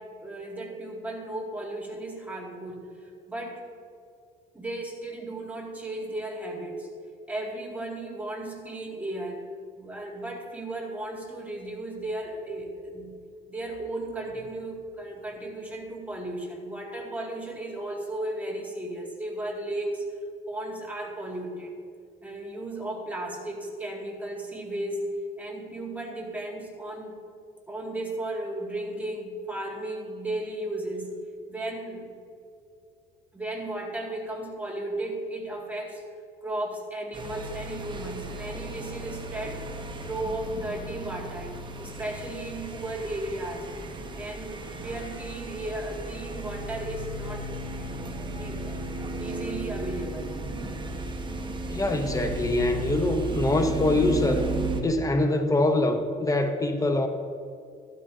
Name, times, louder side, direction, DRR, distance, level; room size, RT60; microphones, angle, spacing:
voice 1, 0.0-3.6 4.5-6.9 7.3-9.4 9.8-13.1 13.5-20.1 20.5-21.7 22.2-25.1 25.4-27.2 27.7-31.1 31.5-32.1 33.3-36.0 36.4-39.7 40.0-43.7 44.1-47.8 48.3-48.8 49.2-50.4, right 1 dB, 10° right, -1 dB, 2.1 m, -35 dB
sound 1, 37.1-54.8, right 2 dB, 30° right, 1.1 m, -35 dB
voice 2, 51.7-54.4 54.8-57.1, left 2 dB, 20° left, 6 dB, 0.8 m, -24 dB
13.0 x 12.5 x 2.7 m, 2.5 s
cardioid pair, 110°, 17 cm